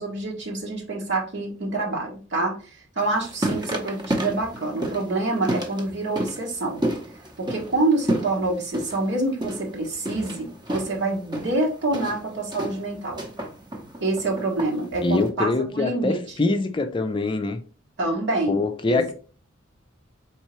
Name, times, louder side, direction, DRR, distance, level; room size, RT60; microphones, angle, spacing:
voice 1, 0.0-6.8 7.4-13.3 14.0-16.5 18.0-19.1, right 2 dB, 60° right, 1.2 m, -27 dB
sound 1, 3.0-15.3, right 1 dB, 20° right, 0.8 m, -31 dB
voice 2, 15.0-17.6 18.5-19.1, left 2 dB, 25° left, 0.4 m, -24 dB
4.3 x 3.6 x 3.0 m
head